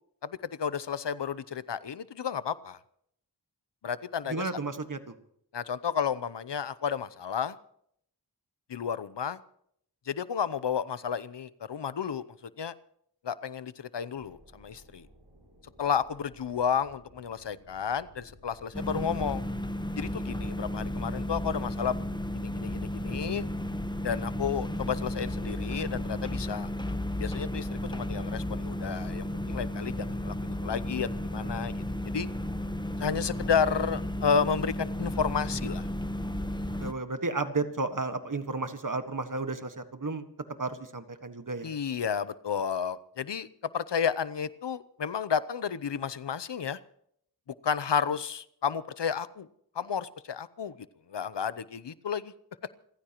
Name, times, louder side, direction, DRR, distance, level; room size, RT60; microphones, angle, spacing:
voice 1, 0.2-2.8 3.8-4.5 5.5-7.6 8.7-9.4 10.1-12.2 12.6-12.7 13.2-15.1 15.8-19.4 20.0-22.0 22.3-23.4 24.0-32.3 33.0-35.9 41.6-43.5 43.7-46.8 47.6-49.5 49.7-50.7 51.1-52.3, left 7 dB, 80° left, 16 dB, 0.7 m, -32 dB
voice 2, 4.3-5.1 36.8-40.2 40.6-41.7, right 3 dB, 50° right, 8 dB, 1.6 m, -33 dB
sound 1, 14.1-27.6, left 1 dB, 80° right, 8.0 m, -55 dB
sound 2, 18.7-36.9, left 1 dB, 10° left, 1.0 m, -33 dB
28.0 x 15.0 x 3.0 m, 0.67 s
wide cardioid pair, 60°, 41 cm